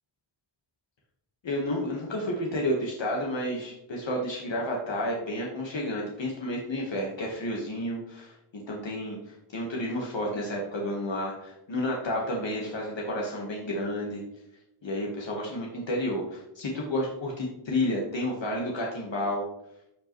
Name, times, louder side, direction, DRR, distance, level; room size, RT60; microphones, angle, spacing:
voice 1, 1.4-14.2 14.8-19.5, left 1 dB, 60° left, -1 dB, 1.5 m, -31 dB
14.5 x 4.9 x 3.1 m, 0.84 s
wide cardioid pair, 140°, 49 cm